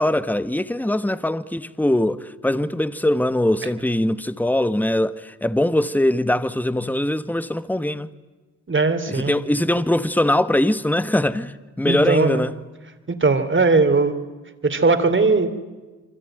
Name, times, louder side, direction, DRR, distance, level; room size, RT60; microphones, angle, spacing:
voice 1, 0.0-8.1 9.1-12.5, left 1 dB, 5° left, 1.4 m, -22 dB
voice 2, 8.7-9.4 11.9-12.4 13.1-14.2 14.6-15.5, right 3 dB, 40° right, 3.5 m, -19 dB
26.5 x 24.0 x 9.2 m
supercardioid pair, 55°, 31 cm